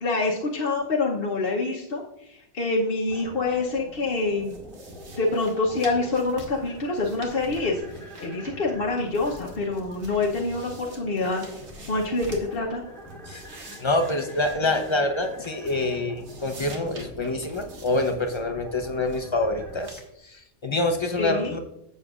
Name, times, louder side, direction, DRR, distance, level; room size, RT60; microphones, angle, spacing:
voice 1, 0.0-4.6 5.2-7.8 8.2-11.5 11.9-12.8 21.2-21.5, left 3 dB, 50° left, -2 dB, 1.1 m, -26 dB
sound 1, 3.1-19.8, equal, ahead, 2.0 m, -44 dB
sound 2, 4.4-8.7 9.0-12.6 13.0-15.9 16.2-18.4 18.8-19.3 19.8-20.1, right 2 dB, 65° right, 1.6 m, -47 dB
voice 2, 13.8-21.6, left 2 dB, 30° left, 5 dB, 0.7 m, -26 dB
12.0 x 7.7 x 2.4 m, 0.82 s
omnidirectional pair, 1.3 m